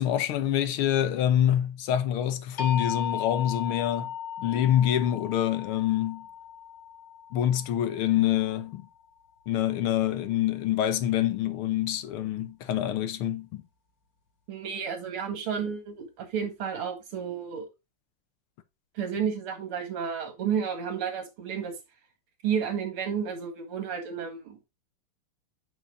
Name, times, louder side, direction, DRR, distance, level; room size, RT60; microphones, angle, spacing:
voice 1, 0.0-6.3 7.3-8.9 9.5-13.6, left 11 dB, 80° left, 1.7 m, -26 dB
sound 1, 2.6-8.6, left 9 dB, 50° left, 1.5 m, -36 dB
voice 2, 14.5-17.7 18.9-21.8 22.4-24.6, right 7 dB, 80° right, 2.6 m, -31 dB
9.2 x 5.4 x 2.5 m
omnidirectional pair, 2.4 m